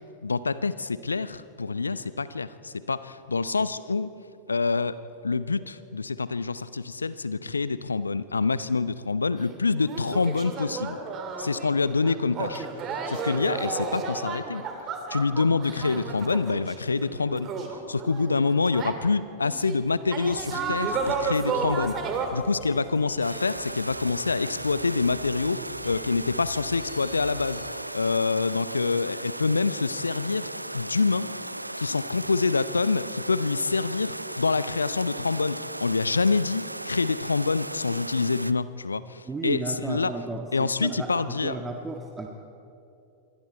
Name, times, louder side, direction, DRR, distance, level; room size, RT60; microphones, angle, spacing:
voice 1, 0.2-4.1 4.5-5.0 5.2-11.0 11.4-14.6 15.1-17.5 17.9-22.0 22.3-27.6 27.9-31.3 31.8-40.1 40.5-41.6, left 4 dB, 75° left, 16 dB, 0.6 m, -26 dB
sound 1, 9.4-9.5 9.7-18.9 19.4-19.8 20.1-22.3, right 4 dB, 30° right, 2.5 m, -32 dB
sound 2, 20.3-27.7, left 5 dB, 50° left, 4.2 m, -46 dB
sound 3, 23.2-38.5, right 1 dB, 85° right, 0.4 m, -36 dB
voice 2, 39.3-41.1 41.4-42.3, right 3 dB, 15° right, 2 dB, 1.6 m, -33 dB
26.0 x 23.5 x 4.4 m, 2.7 s
figure-of-eight pair, 90°, 0 cm